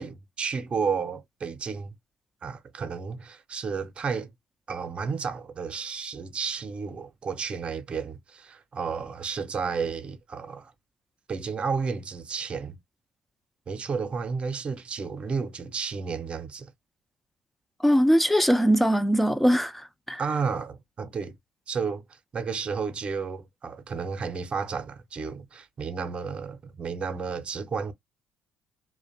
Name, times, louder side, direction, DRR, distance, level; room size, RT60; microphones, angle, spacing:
voice 1, 0.0-2.0 2.4-4.3 4.7-10.7 11.3-12.8 13.7-16.7 20.2-21.4 21.7-27.9, right 5 dB, 40° right, 0.6 m, -32 dB
voice 2, 17.8-20.2, equal, 5° left, 0.3 m, -21 dB
2.4 x 2.2 x 2.6 m
hypercardioid pair, 60°, 3 cm